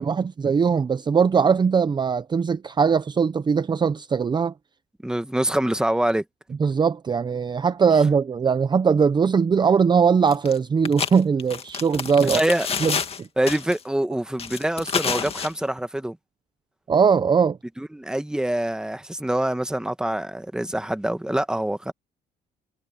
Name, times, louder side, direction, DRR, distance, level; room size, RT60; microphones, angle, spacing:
voice 1, 0.0-4.5 6.6-12.4 12.8-13.3 16.9-17.6, right 6 dB, 25° right, 0.7 m, -20 dB
voice 2, 5.0-6.2 12.2-12.7 13.4-16.2 17.8-21.9, right 1 dB, 5° right, 1.3 m, -25 dB
sound 1, 10.3-10.6 10.8-13.2 13.5-13.8 14.4-15.5, left 6 dB, 35° left, 2.2 m, -28 dB
cardioid pair, 110°, 17 cm